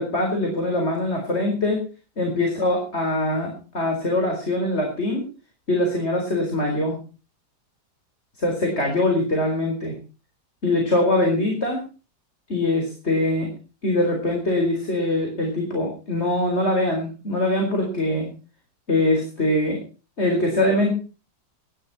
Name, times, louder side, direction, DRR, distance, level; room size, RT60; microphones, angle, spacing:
voice 1, 0.0-1.8 2.2-5.2 5.7-7.0 8.4-9.9 10.6-11.8 12.5-13.5 13.8-18.3 18.9-19.8 20.2-20.9, left 1 dB, 40° left, 2 dB, 4.6 m, -23 dB
18.5 x 12.5 x 4.2 m, 0.35 s
omnidirectional pair, 1.8 m